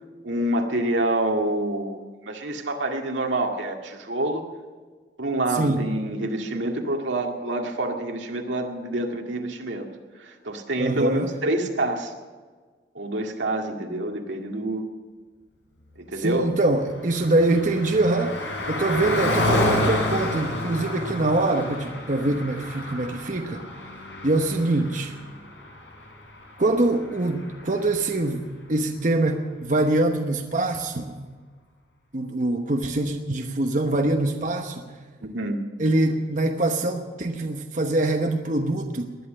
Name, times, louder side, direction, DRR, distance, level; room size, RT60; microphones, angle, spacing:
voice 1, 0.2-4.4 5.2-9.9 10.2-12.1 13.0-14.8 16.0-16.5 35.2-35.6, right 1 dB, 85° right, 2 dB, 2.0 m, -27 dB
voice 2, 5.5-5.9 10.8-11.3 16.2-18.4 18.7-23.6 24.2-25.1 26.6-31.2 32.1-34.9 35.8-39.2, right 2 dB, 45° right, 4 dB, 1.0 m, -24 dB
Car passing by, 16.4-28.2, left 1 dB, 75° left, 4.6 m, -30 dB
19.5 x 11.0 x 6.5 m, 1.5 s
head